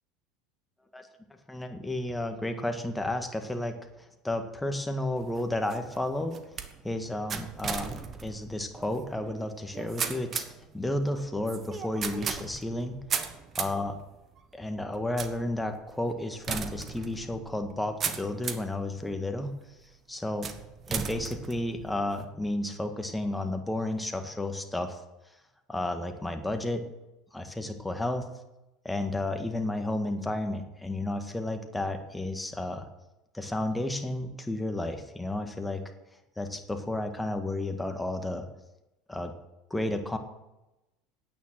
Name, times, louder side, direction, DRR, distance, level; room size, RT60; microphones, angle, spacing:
voice 1, 1.5-3.8 4.2-6.4 6.8-10.5 10.7-13.0 13.6-14.0 14.5-19.5 20.1-20.5 20.9-25.0 25.7-26.8 27.3-28.3 28.8-32.9 33.3-35.8 36.4-38.5 39.1-39.3 39.7-40.2, left 1 dB, 10° left, 6 dB, 1.7 m, -32 dB
sound 1, 5.2-18.8 19.3-19.8 20.4-22.2, right 6 dB, 40° right, 1.2 m, -37 dB
9.1 x 9.0 x 7.6 m, 0.98 s
supercardioid pair, 95°, 0 cm